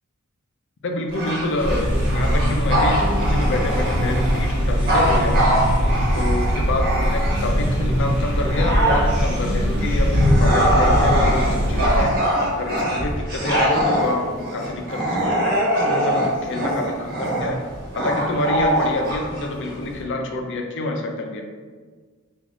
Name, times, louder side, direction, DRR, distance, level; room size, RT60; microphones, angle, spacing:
voice 1, 0.8-5.5 6.1-12.2 12.5-17.7 18.0-21.4, left 2 dB, 60° left, 3 dB, 0.5 m, -27 dB
Bark / Growling, 1.1-7.6 8.1-20.0, right 1 dB, 45° right, 1.1 m, -22 dB
sound 1, 1.6-12.0, equal, 5° right, 1.2 m, -21 dB
3.4 x 2.5 x 3.6 m, 1.5 s
head